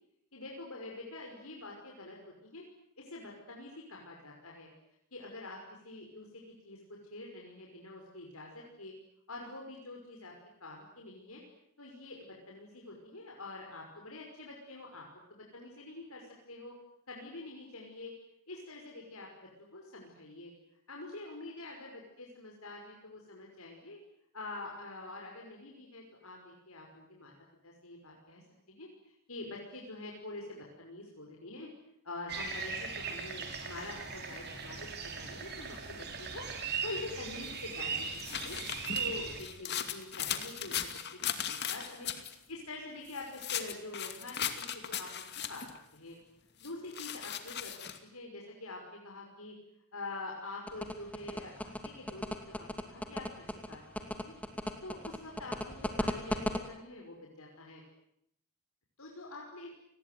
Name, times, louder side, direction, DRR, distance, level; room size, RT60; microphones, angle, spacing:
voice 1, 0.3-2.6 3.0-4.7 5.1-5.6 5.8-6.8 7.1-8.9 9.3-10.3 10.6-11.4 11.8-16.7 17.1-18.1 18.5-20.5 20.9-24.0 24.3-27.3 27.6-28.9 29.3-31.7 32.0-36.5 36.8-38.6 38.9-42.1 42.5-45.2 45.5-45.6 45.9-46.2 46.6-49.5 49.9-54.3 54.8-57.8 59.0-59.7, left 2 dB, 80° left, -1 dB, 5.8 m, -46 dB
sound 1, 32.3-39.4, right 5 dB, 45° right, 5.3 m, -39 dB
sound 2, 37.5-42.3 43.1-45.8 46.6-48.0, left 9 dB, 50° left, 2.5 m, -37 dB
sound 3, 50.7-56.6, equal, 5° left, 2.4 m, -35 dB
29.5 x 21.0 x 9.5 m, 0.76 s
head